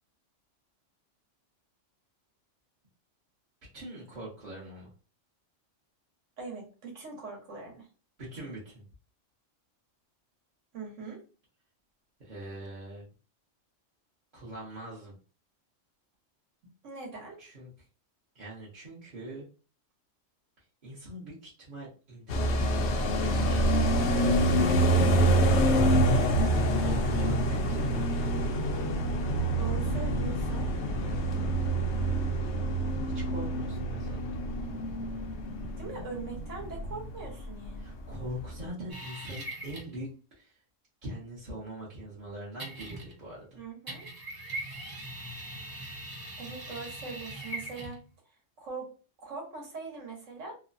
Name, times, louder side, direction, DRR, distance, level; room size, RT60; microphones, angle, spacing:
voice 1, 3.7-4.9 8.2-8.8 12.2-13.1 14.3-15.1 17.4-17.7 18.3-19.5 20.8-23.7 26.1-28.1 33.1-34.3 37.8-40.1 40.3-40.6 41.0-43.6, right 1 dB, 40° right, -8 dB, 1.0 m, -43 dB
voice 2, 6.4-7.9 10.7-11.2 16.8-17.4 24.9-25.5 29.6-30.7 35.8-37.9 43.5-44.1 46.4-48.0 48.6-50.5, right 5 dB, 70° right, -1 dB, 1.4 m, -41 dB
sound 1, 22.3-37.4 37.7-37.8 38.1-38.6, right 1 dB, 70° left, 0.8 m, -26 dB
sound 2, 38.9-40.0 42.6-43.3 43.9-48.1, right 1 dB, 25° right, 0.5 m, -41 dB
3.1 x 2.1 x 2.5 m, 0.36 s
omnidirectional pair, 1.3 m